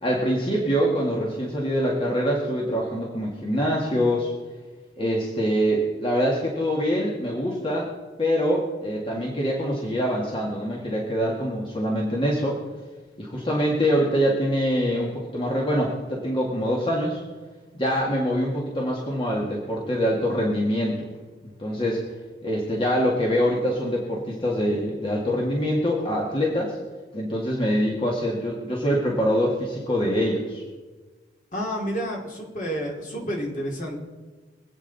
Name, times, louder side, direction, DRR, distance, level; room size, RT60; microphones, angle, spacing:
voice 1, 0.0-4.3 5.0-7.9 8.2-12.6 13.2-17.2 17.7-21.1 21.4-22.0 22.4-26.8 27.1-30.6, equal, 30° left, -3 dB, 2.0 m, -24 dB
voice 2, 31.5-34.0, equal, 45° left, 0 dB, 2.8 m, -30 dB
24.5 x 9.0 x 4.1 m, 1.3 s
head